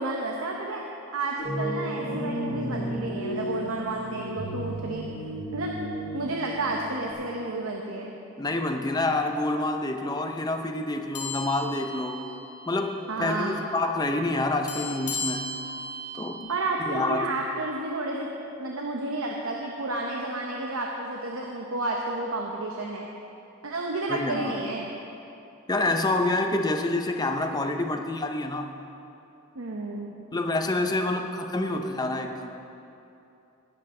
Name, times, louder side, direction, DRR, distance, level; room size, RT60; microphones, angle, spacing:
voice 1, 0.0-5.1 5.5-5.8 6.1-8.1 13.1-13.6 16.5-18.3 18.6-23.1 23.6-24.9 29.5-30.1, right 2 dB, 65° right, 0 dB, 0.9 m, -31 dB
sound 1, 1.4-7.1, equal, 40° left, 1.7 m, -33 dB
voice 2, 8.4-12.2 12.7-15.5 16.1-16.5 16.9-17.3 24.1-24.5 25.7-28.7 30.3-32.5, left 2 dB, 20° left, 5 dB, 0.5 m, -27 dB
sound 2, 11.1-12.8 13.1-13.3 14.7-16.4, left 2 dB, 85° left, 1.8 m, -36 dB
19.0 x 7.9 x 3.8 m, 2.8 s
head